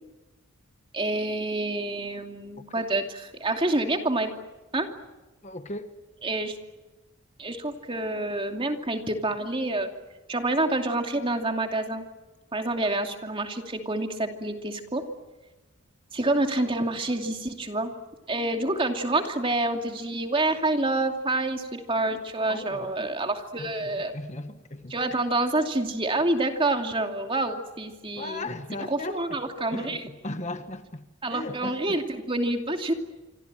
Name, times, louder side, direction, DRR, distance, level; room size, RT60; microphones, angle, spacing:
voice 1, 0.9-4.3 4.7-4.9 6.2-6.6 7.4-9.9 10.3-12.1 12.5-15.0 16.1-17.9 18.3-24.1 24.9-28.4 28.9-30.0 31.2-32.9, right 2 dB, 25° right, 2.6 m, -27 dB
voice 2, 5.4-5.9 22.5-23.0 23.6-25.2 28.1-29.4 29.7-31.0 31.3-32.0, left 2 dB, 30° left, 1.4 m, -37 dB
27.5 x 24.5 x 7.7 m
head